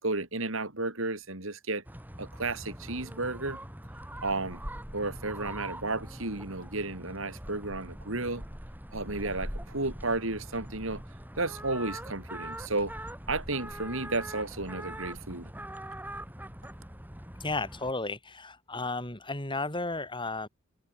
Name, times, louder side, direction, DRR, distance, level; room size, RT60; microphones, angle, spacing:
voice 1, 0.0-1.8 2.2-3.6 4.2-4.6 4.9-8.4 8.9-11.0 11.4-12.9 13.3-15.5, right 2 dB, 65° right, 4.3 m, -33 dB
sound 1, 1.9-17.9, right 1 dB, 10° right, 3.4 m, -42 dB
voice 2, 17.4-20.5, left 3 dB, 25° left, 5.5 m, -33 dB
head